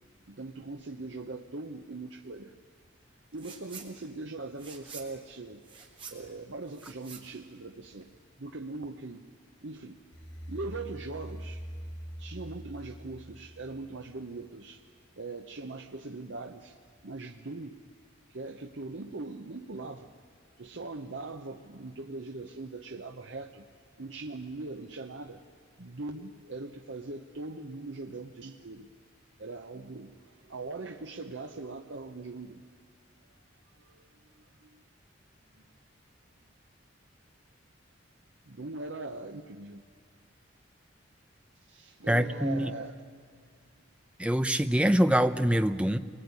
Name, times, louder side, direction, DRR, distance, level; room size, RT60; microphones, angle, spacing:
voice 1, 0.3-2.5 3.3-5.6 6.1-8.1 8.4-9.3 9.6-10.0 10.5-11.6 12.2-14.9 15.2-16.8 17.0-17.8 18.3-20.1 20.6-23.7 24.0-25.4 25.8-28.9 29.4-32.6 33.7-34.1 34.3-34.8 38.4-39.8 41.7-42.9, right 3 dB, 70° right, 3 dB, 1.0 m, -41 dB
sound 1, 3.3-3.9 4.2-8.2, right 6 dB, 25° right, 3.8 m, -48 dB
sound 2, 10.1-14.2, equal, 75° left, 2.0 m, -43 dB
voice 2, 42.1-42.7 44.2-46.0, equal, 5° right, 9 dB, 0.7 m, -24 dB
27.0 x 21.5 x 9.7 m, 2.1 s
head